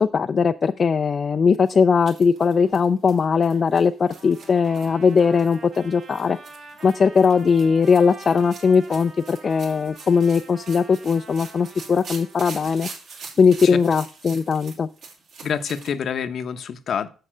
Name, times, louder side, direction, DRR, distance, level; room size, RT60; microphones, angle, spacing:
voice 1, 0.0-6.4 6.8-12.9 13.4-14.9, left 5 dB, 45° left, 9 dB, 0.4 m, -19 dB
sound 1, 1.6-15.9, right 4 dB, 70° right, 3.1 m, -43 dB
Trumpet, 4.1-12.4, right 4 dB, 50° right, 3.5 m, -45 dB
voice 2, 15.4-17.1, left 7 dB, 60° left, 11 dB, 0.8 m, -27 dB
6.8 x 6.6 x 6.2 m, 0.37 s
cardioid pair, 90°, 0 cm